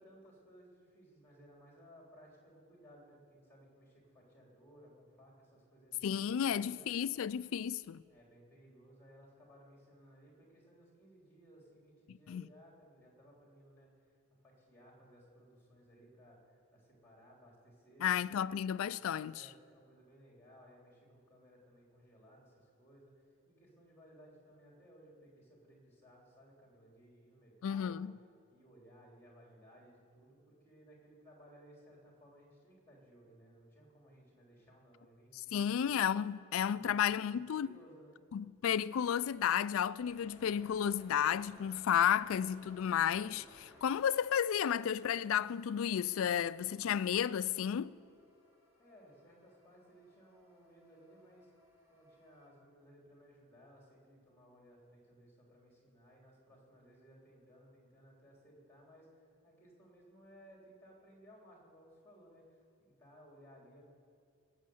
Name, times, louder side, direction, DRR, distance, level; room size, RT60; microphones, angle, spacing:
voice 1, 0.0-6.9 8.1-14.1 14.4-18.9 19.3-28.1 28.5-35.9 36.6-38.2 48.8-51.5 51.9-63.9, equal, 10° left, 3.1 m, -60 dB
voice 2, 6.0-8.0 12.3-12.4 18.0-19.5 27.6-28.1 35.5-37.7 38.3-47.9, left 9 dB, 75° left, 0.3 m, -32 dB
sound 1, 40.0-52.5, left 1 dB, 15° right, 2.9 m, -63 dB
18.5 x 6.5 x 7.8 m
head